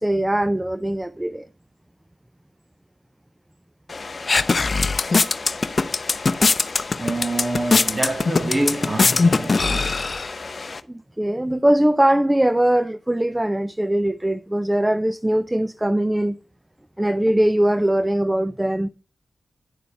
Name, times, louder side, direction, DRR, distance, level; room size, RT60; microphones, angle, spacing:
voice 1, 0.0-1.5 10.9-16.4 17.0-18.9, right 1 dB, 15° right, 0.5 m, -21 dB
sound 1, 3.9-10.8, left 4 dB, 55° left, 0.6 m, -22 dB
voice 2, 7.0-10.0, right 1 dB, 30° right, 2.4 m, -26 dB
9.8 x 6.9 x 3.3 m
cardioid pair, 40°, 0 cm